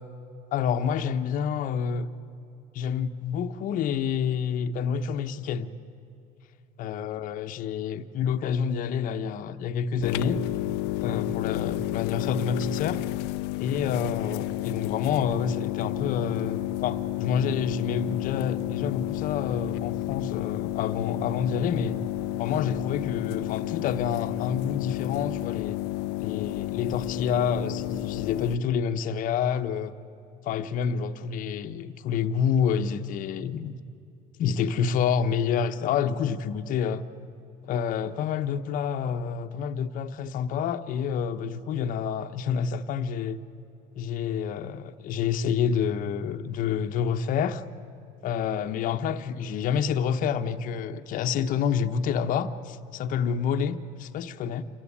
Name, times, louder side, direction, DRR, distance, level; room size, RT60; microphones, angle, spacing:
voice 1, 0.5-2.1 2.7-5.7 6.8-10.4 11.0-13.1 13.6-22.0 22.4-25.8 26.2-29.9 30.4-33.7 34.4-37.0 37.6-43.4 43.9-47.6 48.2-54.6, left 7 dB, 50° left, 1.0 m, -28 dB
sound 1, 10.0-28.6, left 18 dB, 70° left, 0.6 m, -31 dB
27.0 x 15.5 x 10.0 m
cardioid pair, 145°, 18 cm